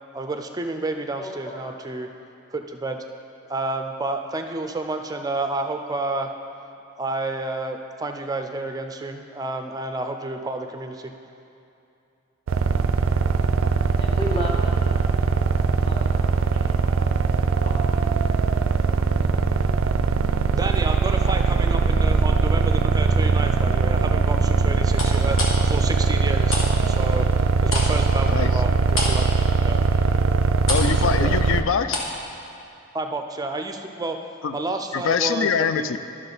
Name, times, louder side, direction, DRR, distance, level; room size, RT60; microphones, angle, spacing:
voice 1, 0.1-2.1 2.5-3.0 3.5-6.3 7.0-11.1 20.5-27.3 27.6-29.8 31.2-31.4 32.9-34.2 34.5-35.9, right 2 dB, 20° right, 5 dB, 0.5 m, -30 dB
voice 2, 1.2-1.6 13.9-15.0 15.7-17.9, left 1 dB, 25° left, -4 dB, 1.5 m, -35 dB
sound 1, 12.5-31.6, right 4 dB, 75° right, 0.3 m, -21 dB
sound 2, 20.5-22.3 22.7-23.2 24.9-26.7 26.9-32.2 32.5-32.6, left 2 dB, 90° left, 1.5 m, -31 dB
voice 3, 30.7-32.0 34.4-34.6 34.9-36.0, left 6 dB, 70° left, 10 dB, 0.4 m, -23 dB
12.0 x 6.2 x 4.0 m, 2.7 s
head